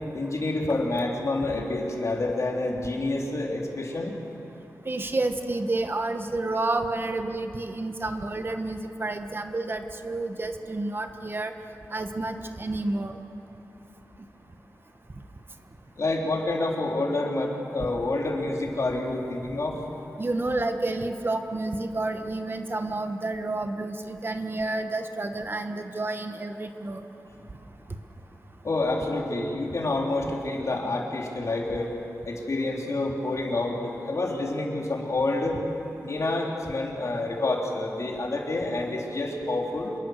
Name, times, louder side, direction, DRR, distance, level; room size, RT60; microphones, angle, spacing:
voice 1, 0.1-4.1 16.0-19.8 28.6-31.9 32.3-35.6 36.0-40.0, left 2 dB, 55° left, 0 dB, 3.5 m, -28 dB
voice 2, 4.9-11.5 11.9-13.2 20.2-27.0, right 2 dB, 35° right, 6 dB, 1.2 m, -30 dB
27.0 x 22.0 x 6.5 m, 2.9 s
wide cardioid pair, 115°, 6 cm